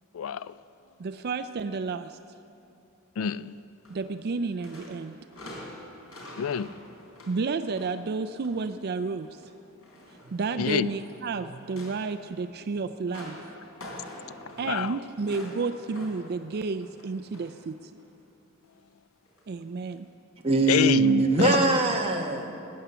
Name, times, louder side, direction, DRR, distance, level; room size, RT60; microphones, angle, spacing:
voice 1, 0.1-0.5 3.2-3.5 6.4-6.7 10.6-10.9 14.7-15.0 20.7-21.6, left 7 dB, 70° left, 0.4 m, -27 dB
voice 2, 1.0-2.2 3.9-5.2 7.3-9.3 10.3-13.4 14.6-18.0 19.5-20.1, right 4 dB, 50° right, 0.4 m, -31 dB
sound 1, 3.8-4.3 4.6-8.7 9.1-11.2 11.6-17.7 18.0-18.2 19.3-19.4 20.0-20.1, left 1 dB, 90° left, 3.7 m, -46 dB
voice 3, 20.4-22.6, right 2 dB, 25° right, 1.3 m, -22 dB
18.5 x 9.5 x 6.8 m
head